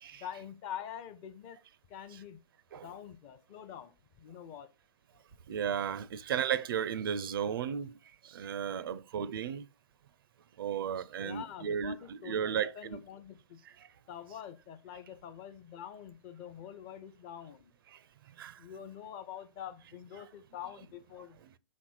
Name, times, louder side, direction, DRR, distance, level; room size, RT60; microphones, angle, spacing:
voice 1, 0.1-1.6 1.9-2.4 2.7-4.7 11.2-13.6 14.1-17.7 18.6-21.6, left 9 dB, 25° left, 0.6 m, -46 dB
voice 2, 5.5-7.9 8.3-9.6 10.6-13.0 18.4-18.5, right 8 dB, 50° right, 0.4 m, -34 dB
5.6 x 4.2 x 6.2 m
figure-of-eight pair, 125°, 16 cm